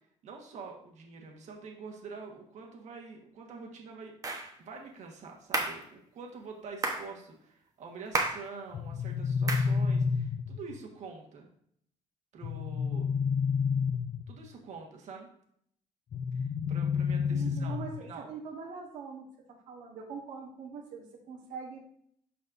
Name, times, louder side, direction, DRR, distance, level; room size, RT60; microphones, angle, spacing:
voice 1, 0.2-4.2 4.6-11.5 12.3-13.1 14.3-15.3 16.3-18.3, right 4 dB, 65° right, 1 dB, 1.4 m, -46 dB
sound 1, 4.2-4.5 5.5-5.8 6.8-7.1 8.1-8.5 9.5-9.7, right 3 dB, 25° right, 1.0 m, -31 dB
sound 2, 8.7-10.7 12.4-14.5 16.1-18.1, left 6 dB, 35° left, 0.4 m, -30 dB
voice 2, 17.1-19.2 19.7-21.8, right 5 dB, 90° right, -1 dB, 1.3 m, -43 dB
12.0 x 4.2 x 2.6 m, 0.68 s
cardioid pair, 140°, 13 cm